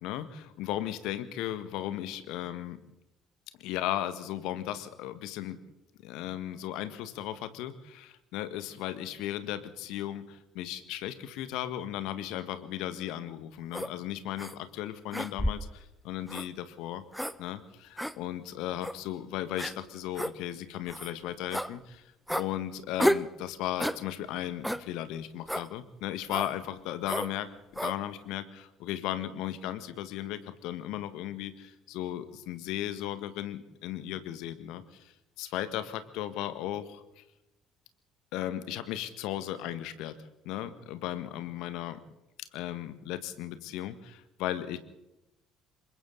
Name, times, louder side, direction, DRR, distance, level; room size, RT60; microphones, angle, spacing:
voice 1, 0.0-2.8 3.6-5.6 6.0-17.0 17.4-37.2 38.3-40.2 40.4-42.0 42.5-44.8, left 12 dB, 60° left, 12 dB, 1.6 m, -36 dB
sound 1, 13.7-13.9 14.4-14.5 15.1-15.7 16.3-16.5 17.1-17.4 18.0-18.1 18.8-19.0 19.6-19.7 20.2-20.3 20.9-21.1 21.5-21.7 22.3-22.5 23.0-23.3 23.8-24.0 24.6-24.8 25.5-25.7 26.3-26.5 27.1-27.3 27.8-28.0, equal, ahead, 1.0 m, -31 dB
27.5 x 23.5 x 4.0 m, 0.92 s
figure-of-eight pair, 55°, 0 cm